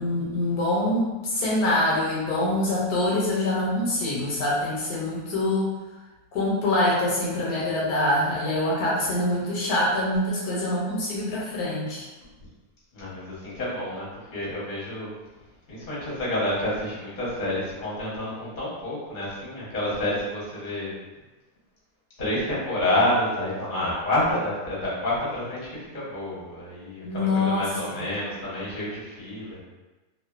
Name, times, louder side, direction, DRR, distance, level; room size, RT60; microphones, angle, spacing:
voice 1, 0.0-5.7 6.3-12.0 27.0-27.7, left 1 dB, 75° left, -5 dB, 1.1 m, -25 dB
voice 2, 12.9-14.1 14.3-15.1 15.7-20.9 22.2-29.6, left 1 dB, 40° left, -7 dB, 0.8 m, -28 dB
2.5 x 2.4 x 2.3 m, 1.1 s
omnidirectional pair, 1.6 m